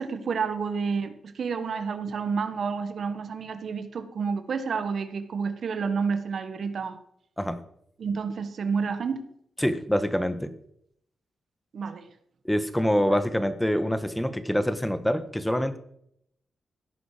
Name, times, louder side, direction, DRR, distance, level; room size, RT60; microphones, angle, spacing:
voice 1, 0.0-7.0 8.0-9.2 11.7-12.0, right 5 dB, 70° right, 10 dB, 1.6 m, -29 dB
voice 2, 9.6-10.5 12.4-15.8, equal, 5° left, 11 dB, 1.5 m, -25 dB
16.5 x 9.4 x 5.1 m, 0.72 s
cardioid pair, 55°, 0 cm